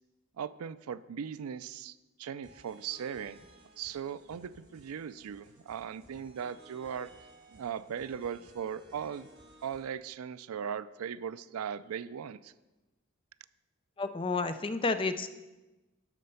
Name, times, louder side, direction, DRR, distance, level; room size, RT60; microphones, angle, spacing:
voice 1, 0.4-3.4 3.8-7.1 7.5-9.3 9.6-12.5, right 7 dB, 85° right, 16 dB, 0.4 m, -38 dB
sound 1, 2.4-9.8, right 1 dB, 45° right, 4.0 m, -57 dB
voice 2, 14.0-15.3, left 3 dB, 25° left, 10 dB, 0.4 m, -30 dB
12.0 x 4.3 x 6.9 m, 1.1 s
head